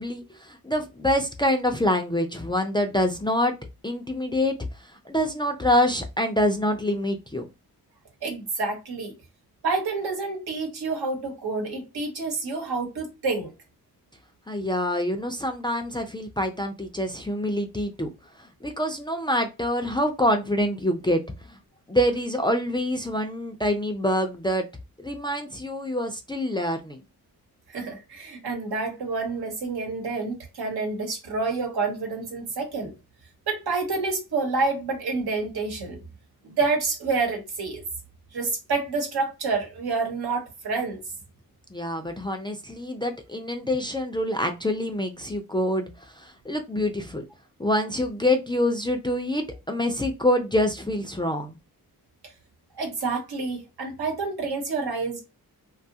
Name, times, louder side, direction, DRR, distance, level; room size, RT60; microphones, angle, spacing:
voice 1, 0.0-3.6 3.8-7.5 14.5-18.1 18.4-21.2 21.5-21.6 21.9-24.7 25.0-27.0 41.7-47.2 47.6-51.6, left 1 dB, 15° left, 0.3 m, -26 dB
voice 2, 8.2-9.1 9.6-13.5 27.7-32.9 33.5-36.0 36.4-37.8 38.3-41.0 52.7-55.2, right 4 dB, 80° right, 1.1 m, -28 dB
2.6 x 2.3 x 2.7 m
wide cardioid pair, 90°, 38 cm